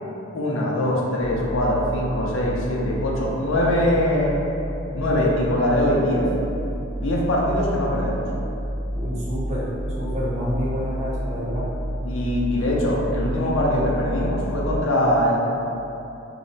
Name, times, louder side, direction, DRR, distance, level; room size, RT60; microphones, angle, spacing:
voice 1, 0.3-4.4 4.9-6.3 6.9-8.3 12.1-15.4, left 1 dB, 80° left, -3 dB, 0.6 m, -22 dB
sound 1, 1.2-14.8, equal, 55° left, 0.8 m, -30 dB
voice 2, 9.0-11.7, equal, 35° right, -8 dB, 0.7 m, -28 dB
2.7 x 2.1 x 3.9 m, 2.9 s
head